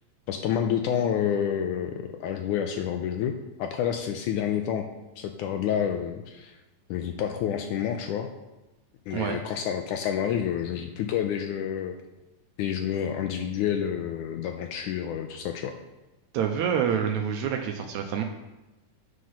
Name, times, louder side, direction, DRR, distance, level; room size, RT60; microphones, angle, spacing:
voice 1, 0.3-4.9 5.2-6.6 6.9-8.3 9.1-11.9 12.6-15.7, left 9 dB, 80° left, 5 dB, 1.9 m, -29 dB
voice 2, 16.3-18.2, right 8 dB, 80° right, 3 dB, 1.7 m, -27 dB
7.8 x 6.3 x 5.6 m, 1.1 s
omnidirectional pair, 4.0 m